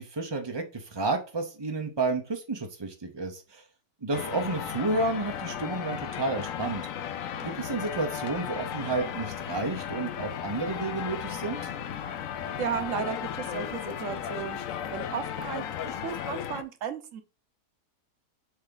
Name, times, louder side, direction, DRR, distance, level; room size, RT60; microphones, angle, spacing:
voice 1, 0.0-3.6 4.0-6.9 7.4-11.7, right 3 dB, 40° right, 3 dB, 0.3 m, -31 dB
sound 1, 4.1-16.6, left 9 dB, 65° left, 0.9 m, -35 dB
voice 2, 12.4-14.6 14.9-17.2, right 7 dB, 60° right, 10 dB, 1.1 m, -34 dB
7.3 x 3.5 x 3.8 m, 0.34 s
omnidirectional pair, 1.7 m